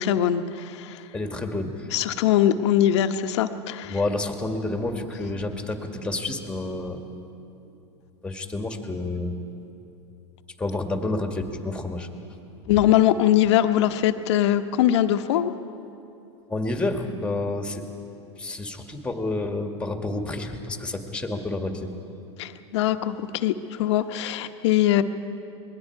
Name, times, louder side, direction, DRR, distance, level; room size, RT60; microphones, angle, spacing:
voice 1, 0.0-1.0 1.9-3.9 12.7-15.5 22.4-25.0, left 11 dB, 70° left, 9 dB, 1.0 m, -22 dB
voice 2, 1.1-1.9 3.9-7.0 7.7-7.8 8.2-9.3 10.6-12.1 16.5-17.9 18.4-21.9, left 2 dB, 5° left, 4 dB, 2.1 m, -29 dB
27.5 x 21.5 x 4.7 m, 2.8 s
hypercardioid pair, 110°, 15 cm